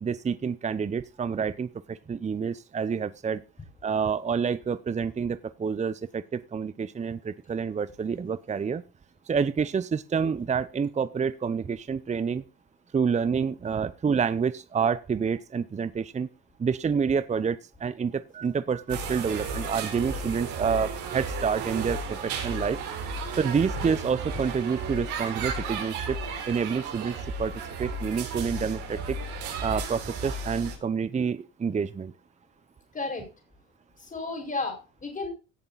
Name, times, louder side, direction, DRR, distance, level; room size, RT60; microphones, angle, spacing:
voice 1, 0.0-3.4 3.8-8.8 9.3-12.4 12.9-16.3 16.6-22.8 23.4-26.2 26.5-29.2 29.6-32.1, right 6 dB, 25° right, 15 dB, 0.7 m, -28 dB
sound 1, 18.9-30.8, right 4 dB, 75° right, 3.9 m, -34 dB
voice 2, 32.9-33.2 34.0-35.3, left 3 dB, 25° left, 3 dB, 5.0 m, -33 dB
17.0 x 6.9 x 4.0 m, 0.31 s
supercardioid pair, 80°, 30 cm